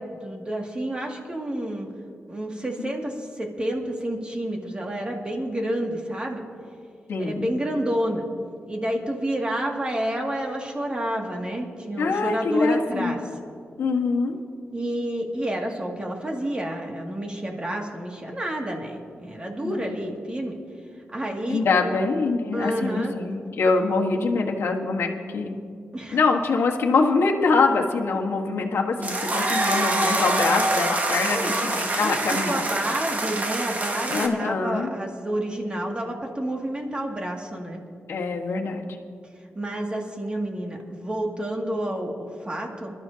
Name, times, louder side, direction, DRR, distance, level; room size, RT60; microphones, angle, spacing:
voice 1, 0.0-1.9 2.3-6.4 7.2-8.2 8.7-13.2 14.7-20.6 21.1-21.9 22.5-23.1 25.9-26.2 31.3-31.5 32.0-37.8 39.6-42.9, right 1 dB, 25° right, 0 dB, 2.2 m, -29 dB
voice 2, 7.1-7.5 12.0-13.2 13.8-14.4 19.6-19.8 21.5-25.6 26.1-32.6 34.1-34.9 38.1-38.9, left 4 dB, 80° left, 0 dB, 1.4 m, -24 dB
sound 1, 29.0-34.3, right 2 dB, 40° right, 1.5 m, -25 dB
26.5 x 13.0 x 2.8 m, 2.2 s
cardioid pair, 95°, 4 cm